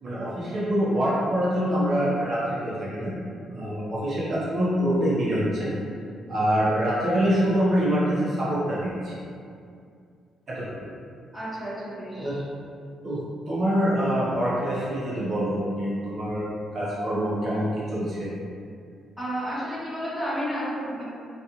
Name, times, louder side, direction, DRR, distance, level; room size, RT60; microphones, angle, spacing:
voice 1, 0.0-3.2 3.5-5.7 6.3-9.1 10.5-10.9 12.1-12.4 13.0-13.2 13.5-18.3, equal, 50° right, -9 dB, 0.8 m, -25 dB
voice 2, 11.3-12.4 19.2-21.0, equal, ahead, -11 dB, 1.0 m, -31 dB
2.4 x 2.4 x 2.8 m, 2.4 s
cardioid pair, 90°, 0 cm